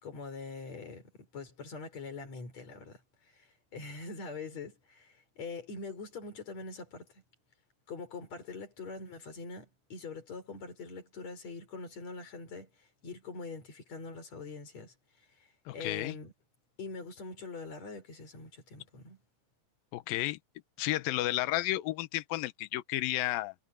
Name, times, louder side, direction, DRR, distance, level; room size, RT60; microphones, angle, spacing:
voice 1, 0.0-7.2 7.9-14.9 15.4-16.3 16.8-19.2, left 4 dB, 35° left, 5.7 m, -44 dB
voice 2, 15.7-16.2 19.9-20.4 20.8-23.5, left 17 dB, 85° left, 2.0 m, -32 dB
omnidirectional pair, 5.3 m